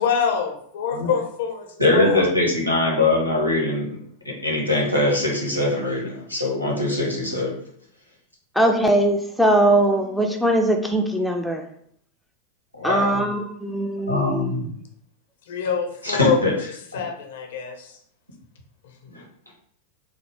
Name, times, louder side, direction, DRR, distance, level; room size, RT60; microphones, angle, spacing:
voice 1, 0.0-1.7 1.9-2.3 15.5-16.4 16.9-17.9, left 7 dB, 55° left, 3 dB, 0.5 m, -25 dB
voice 2, 1.8-3.9 4.4-7.6 12.8-13.2 14.1-14.7 16.0-16.5 19.1-19.2, left 2 dB, 90° left, -2 dB, 0.9 m, -22 dB
voice 3, 8.6-11.6 12.8-14.6, right 1 dB, ahead, 2 dB, 0.4 m, -21 dB
3.2 x 2.0 x 3.2 m, 0.65 s
figure-of-eight pair, 90°, 0 cm